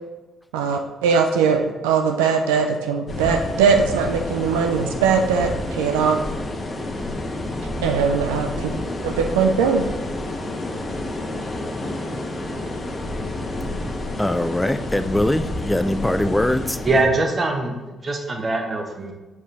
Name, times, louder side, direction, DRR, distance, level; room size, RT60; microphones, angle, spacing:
voice 1, 0.5-6.2 7.8-8.7 9.0-9.9, right 6 dB, 80° right, 0.4 m, -20 dB
sound 1, 3.1-17.0, left 1 dB, 45° left, 1.4 m, -29 dB
voice 2, 14.2-16.8, left 1 dB, 10° left, 0.4 m, -22 dB
voice 3, 16.8-19.1, right 2 dB, 40° right, 1.2 m, -22 dB
6.4 x 5.4 x 3.5 m
hypercardioid pair, 45°, 0 cm